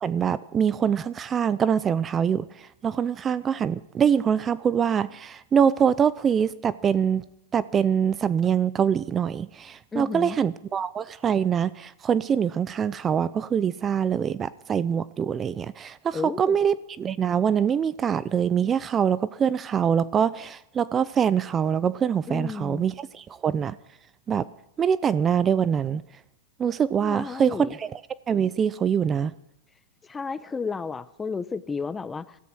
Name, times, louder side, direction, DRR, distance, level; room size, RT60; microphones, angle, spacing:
voice 1, 0.0-2.5 2.8-7.2 7.5-23.7 24.3-24.5 24.8-26.0 26.6-28.0 28.3-29.3, right 7 dB, 20° right, 18 dB, 0.5 m, -24 dB
voice 2, 9.9-10.4 16.1-16.6 22.3-22.9 27.0-27.7 30.1-32.2, left 5 dB, 15° left, 17 dB, 0.8 m, -32 dB
16.5 x 14.0 x 6.2 m, 0.79 s
hypercardioid pair, 130°, 0 cm